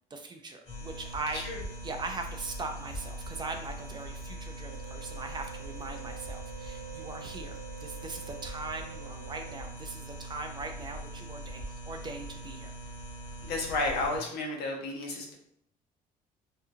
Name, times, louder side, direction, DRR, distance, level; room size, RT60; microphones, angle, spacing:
voice 1, 0.1-1.4 1.8-12.7, right 3 dB, 25° right, 5 dB, 0.3 m, -40 dB
sound 1, 0.7-14.2, right 1 dB, 25° left, 1.3 m, -42 dB
sound 2, 4.6-9.7, right 10 dB, 60° right, 0.8 m, -48 dB
voice 2, 13.4-15.3, left 2 dB, 70° left, 0 dB, 0.8 m, -32 dB
2.7 x 2.3 x 2.6 m, 0.69 s
cardioid pair, 110°, 17 cm